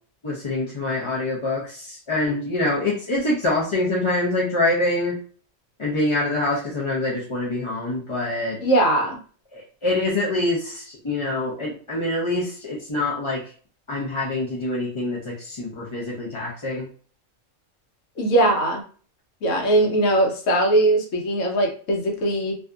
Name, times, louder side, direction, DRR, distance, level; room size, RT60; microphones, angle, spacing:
voice 1, 0.2-5.1 5.8-8.6 9.5-13.4 13.9-16.9, left 2 dB, 40° left, -6 dB, 0.4 m, -25 dB
voice 2, 8.6-9.2 18.2-18.8 19.4-22.5, right 1 dB, 75° left, 1 dB, 1.1 m, -20 dB
2.7 x 2.4 x 2.3 m, 0.42 s
omnidirectional pair, 1.4 m